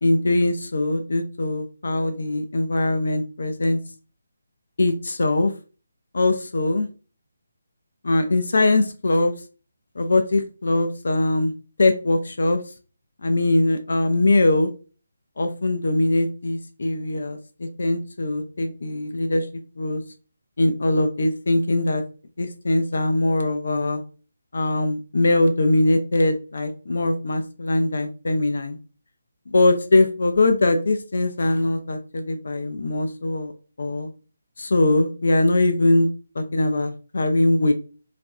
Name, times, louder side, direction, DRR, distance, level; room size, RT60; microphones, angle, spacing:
voice 1, 0.0-3.8 4.8-5.5 6.1-6.9 8.0-9.3 10.0-11.5 11.8-12.6 13.2-14.7 15.4-19.5 19.8-20.0 20.6-22.0 22.4-24.0 24.5-28.8 29.5-33.5 33.8-34.1 34.6-36.1 36.4-37.7, left 2 dB, 55° left, 7 dB, 0.4 m, -21 dB
2.4 x 2.2 x 2.5 m, 0.35 s
figure-of-eight pair, 150°, 0 cm